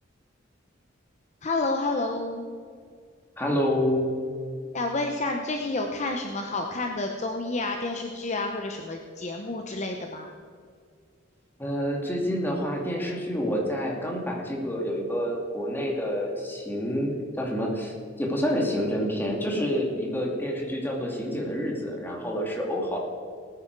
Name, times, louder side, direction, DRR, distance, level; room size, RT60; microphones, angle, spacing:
voice 1, 1.4-2.5 4.7-10.3, left 2 dB, 40° left, 3 dB, 0.9 m, -29 dB
voice 2, 3.4-4.2 11.6-17.1 17.4-23.0, equal, 10° left, -1 dB, 2.4 m, -28 dB
18.5 x 9.8 x 4.7 m, 2.1 s
head